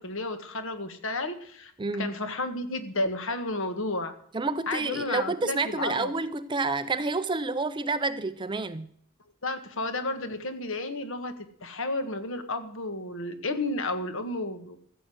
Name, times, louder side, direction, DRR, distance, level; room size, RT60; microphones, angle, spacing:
voice 1, 0.0-1.7 2.0-4.1 4.7-6.1 9.4-14.8, left 2 dB, 65° left, 1.7 m, -32 dB
voice 2, 1.8-2.1 4.3-8.9, right 3 dB, 20° right, 0.5 m, -29 dB
15.0 x 7.6 x 7.7 m
head